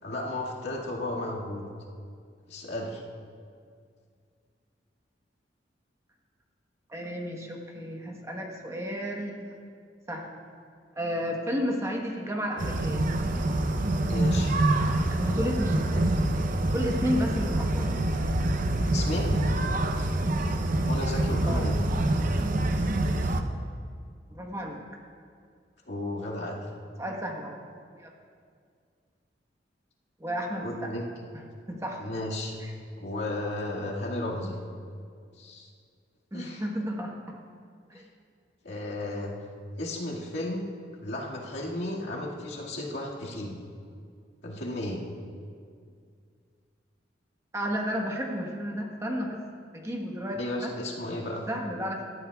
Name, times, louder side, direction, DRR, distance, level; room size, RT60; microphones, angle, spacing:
voice 1, 0.0-1.6 2.5-3.0 14.0-14.5 18.9-19.4 20.8-21.9 25.9-26.6 30.5-31.0 32.0-32.6 33.0-34.6 35.4-35.7 36.3-36.6 37.9-38.0 38.6-39.3 39.8-40.7 41.0-43.6 44.4-45.0 50.3-51.5, left 1 dB, 70° left, -4 dB, 2.0 m, -34 dB
voice 2, 6.9-9.5 10.1-10.4 11.0-13.1 15.1-15.8 16.7-17.9 21.5-21.7 24.3-24.8 27.0-27.6 27.9-28.1 30.2-30.9 31.7-32.0 32.6-32.7 36.3-37.4 37.9-38.0 47.5-49.4 49.7-50.7 51.5-52.0, equal, 15° right, 0 dB, 1.2 m, -32 dB
sound 1, 12.6-23.4, right 1 dB, 50° right, 0.6 m, -26 dB
18.5 x 12.5 x 2.3 m, 2.2 s
head